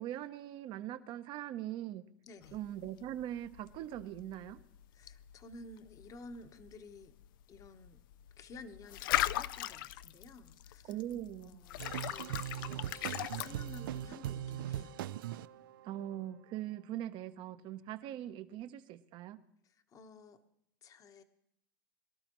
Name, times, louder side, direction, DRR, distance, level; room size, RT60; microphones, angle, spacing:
voice 1, 0.0-2.0 2.5-4.6 10.9-11.6 15.8-19.4, right 12 dB, 45° right, 11 dB, 0.8 m, -41 dB
voice 2, 2.3-2.6 4.9-7.2 7.5-8.0 8.4-11.0 11.4-15.0 19.6-20.4 20.8-21.2, left 3 dB, 30° left, 8 dB, 1.1 m, -53 dB
sound 1, 2.4-14.1, left 14 dB, 75° left, 0.4 m, -40 dB
sound 2, 11.8-16.3, right 12 dB, 80° right, 0.4 m, -40 dB
23.0 x 12.0 x 3.1 m, 0.72 s
supercardioid pair, 120°, 11 cm